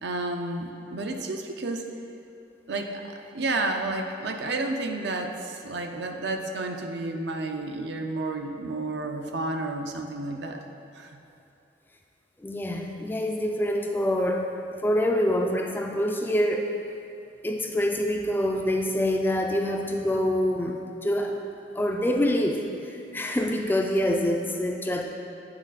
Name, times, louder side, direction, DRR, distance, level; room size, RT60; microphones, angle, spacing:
voice 1, 0.0-1.8 2.7-10.6 10.9-11.2, right 2 dB, 60° right, 4 dB, 0.5 m, -31 dB
voice 2, 12.4-14.4 14.8-16.7 17.4-21.4 21.7-25.0, left 1 dB, 10° left, 2 dB, 0.3 m, -26 dB
8.8 x 4.1 x 4.0 m, 2.7 s
head